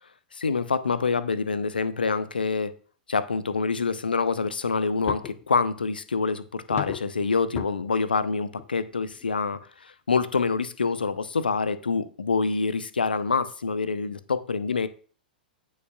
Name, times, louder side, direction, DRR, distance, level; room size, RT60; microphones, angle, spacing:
voice 1, 0.3-2.8 3.1-14.9, left 4 dB, 80° left, 0.7 m, -26 dB
sound 1, 5.1-5.5 6.7-7.2 7.6-7.7 8.6-8.7 9.1-9.2 9.5-9.6 10.2-10.3, left 11 dB, 30° left, 0.7 m, -34 dB
16.0 x 5.5 x 2.4 m
figure-of-eight pair, 100°, 5 cm